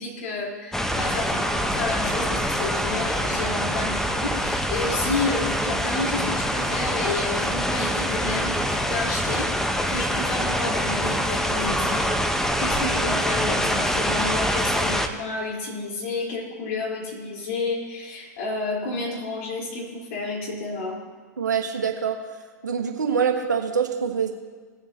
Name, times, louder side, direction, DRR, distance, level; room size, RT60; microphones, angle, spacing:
voice 1, 0.0-12.1 12.6-21.0, left 3 dB, 55° left, -2 dB, 3.4 m, -30 dB
sound 1, 0.7-15.1, equal, 5° left, 0.8 m, -25 dB
voice 2, 21.4-22.2 22.6-24.3, right 7 dB, 80° right, 3 dB, 1.4 m, -24 dB
18.5 x 7.4 x 2.7 m, 1.5 s
figure-of-eight pair, 100°, 10 cm